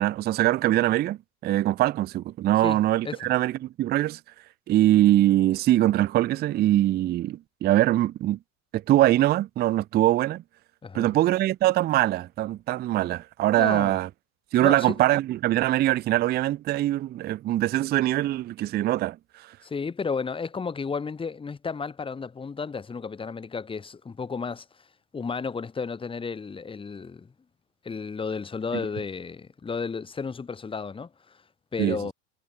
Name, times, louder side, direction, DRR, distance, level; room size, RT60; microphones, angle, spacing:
voice 1, 0.0-4.2 4.7-8.4 8.7-10.4 10.9-14.1 14.5-19.2 19.4-19.5 31.8-32.0, right 14 dB, 25° right, 0.4 m, -23 dB
voice 2, 10.8-11.1 13.6-14.0 14.6-15.0 19.6-24.9 25.1-27.3 27.8-31.4 31.7-32.1, left 5 dB, 10° left, 0.7 m, -33 dB
hypercardioid pair, 90°, 46 cm